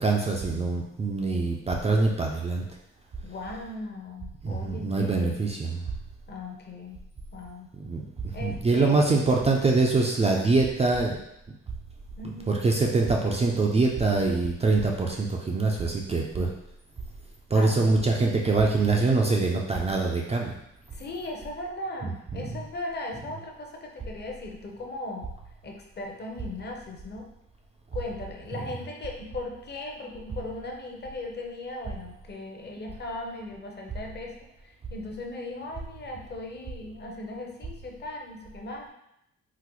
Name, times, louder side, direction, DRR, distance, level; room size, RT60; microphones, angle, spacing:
voice 1, 0.0-2.6 4.4-5.9 7.8-11.2 12.5-16.5 17.5-20.6 22.3-22.5, right 3 dB, 20° right, -1 dB, 0.4 m, -24 dB
voice 2, 3.2-5.5 6.3-7.0 7.3-7.7 8.3-9.2 12.2-12.6 17.5-18.3 20.9-25.3 25.6-27.3 27.9-38.9, left 2 dB, 35° left, 1 dB, 0.7 m, -38 dB
3.8 x 2.1 x 3.0 m, 0.81 s
cardioid pair, 90°, 30 cm